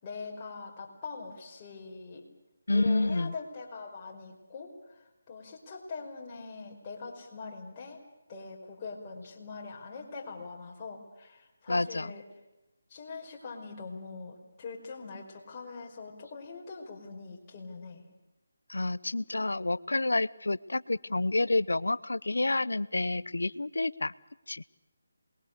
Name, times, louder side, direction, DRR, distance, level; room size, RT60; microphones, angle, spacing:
voice 1, 0.0-2.2 2.7-8.0 8.3-12.2 12.9-18.1, left 4 dB, 25° left, -1 dB, 5.3 m, -43 dB
voice 2, 2.7-3.3 11.7-12.1 18.7-24.1 24.5-24.6, left 2 dB, 85° left, 19 dB, 0.8 m, -29 dB
28.0 x 21.5 x 6.9 m, 0.99 s
figure-of-eight pair, 160°, 0 cm